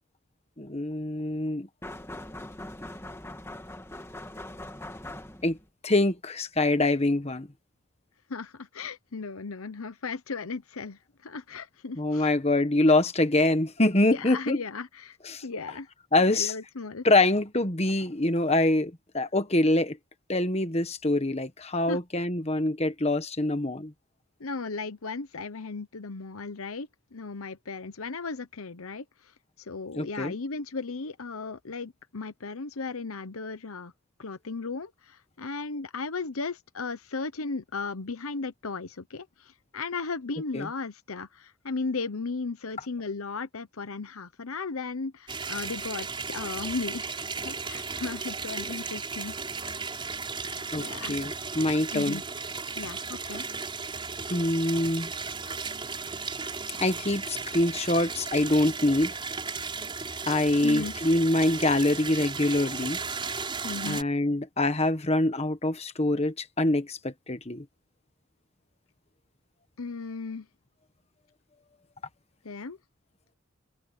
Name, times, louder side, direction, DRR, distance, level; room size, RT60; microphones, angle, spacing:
voice 1, 0.6-1.7 5.4-5.6 5.8-7.5 12.0-14.6 15.2-15.4 16.1-16.5 17.0-20.0 20.3-23.9 30.0-30.3 40.5-40.7 50.7-52.2 54.3-55.1 56.8-59.1 60.3-63.0 63.8-67.6, left 2 dB, 30° left, 1.4 m, -25 dB
sound 1, 1.8-5.7, left 1 dB, 10° left, 1.9 m, -41 dB
voice 2, 8.3-12.3 14.0-15.2 15.4-15.9 16.2-17.0 21.9-22.0 24.4-29.0 29.6-33.9 34.2-49.3 49.6-49.7 50.8-51.2 51.9-52.2 52.8-53.5 60.6-60.9 63.6-64.0 69.8-70.5 72.4-72.8, left 4 dB, 80° left, 1.0 m, -36 dB
sound 2, 45.3-64.0, right 4 dB, 25° right, 5.7 m, -35 dB
open air
head